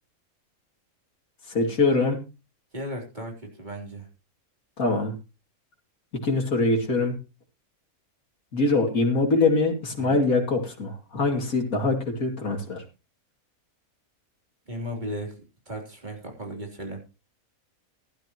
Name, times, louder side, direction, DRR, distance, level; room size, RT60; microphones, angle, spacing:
voice 1, 1.5-2.2 4.8-5.1 6.2-7.2 8.5-12.8, left 3 dB, 75° left, 1 dB, 3.1 m, -23 dB
voice 2, 2.7-4.1 10.0-10.2 14.7-15.4 15.7-17.0, equal, 30° right, 2 dB, 3.6 m, -35 dB
16.0 x 11.5 x 3.0 m, 0.29 s
omnidirectional pair, 1.5 m